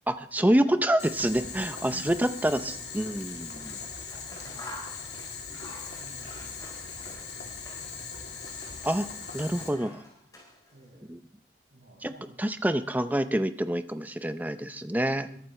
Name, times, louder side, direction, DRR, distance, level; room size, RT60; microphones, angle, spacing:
voice 1, 0.1-3.8 8.8-9.1 9.3-10.0 11.1-11.2 12.0-12.1 12.4-15.3, right 1 dB, 10° right, 10 dB, 0.6 m, -27 dB
Boiling, 1.0-9.7, left 5 dB, 65° left, 3.0 m, -40 dB
Scissors, 3.6-8.0 8.3-10.9, left 1 dB, 20° left, 4.5 m, -49 dB
voice 2, 4.3-5.2 5.5-5.7 5.9-7.7 7.9-8.3 10.7-11.1 11.7-12.5 15.0-15.4, right 1 dB, 75° right, -3 dB, 7.7 m, -53 dB
21.5 x 11.5 x 3.3 m, 0.64 s
head